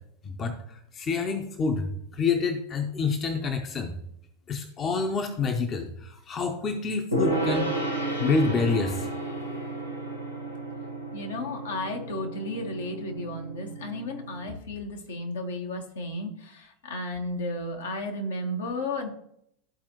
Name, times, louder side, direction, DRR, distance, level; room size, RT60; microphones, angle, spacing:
voice 1, 1.0-1.9 2.2-3.9 4.5-7.7 8.2-9.1, left 4 dB, 30° left, 6 dB, 0.8 m, -27 dB
Gong, 7.1-14.6, right 2 dB, 90° left, 1.2 m, -32 dB
voice 2, 11.1-19.1, left 1 dB, 70° left, 2 dB, 1.3 m, -33 dB
13.0 x 4.3 x 2.9 m, 0.74 s
figure-of-eight pair, 85°, 0 cm